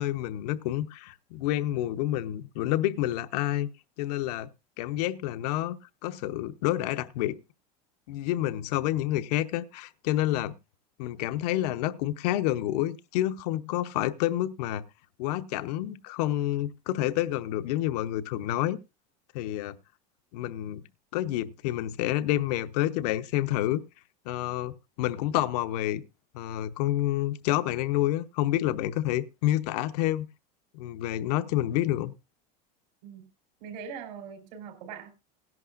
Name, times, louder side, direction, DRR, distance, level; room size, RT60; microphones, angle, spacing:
voice 1, 0.0-3.7 4.0-4.5 4.8-7.4 8.1-10.5 11.0-14.8 15.2-18.8 19.3-19.8 20.3-20.8 21.1-23.8 24.3-24.7 25.0-26.0 26.3-30.3 30.7-32.1, left 14 dB, 70° left, 0.8 m, -28 dB
voice 2, 33.6-35.1, right 7 dB, 85° right, 4.4 m, -41 dB
17.5 x 11.0 x 2.5 m
cardioid pair, 175°, 21 cm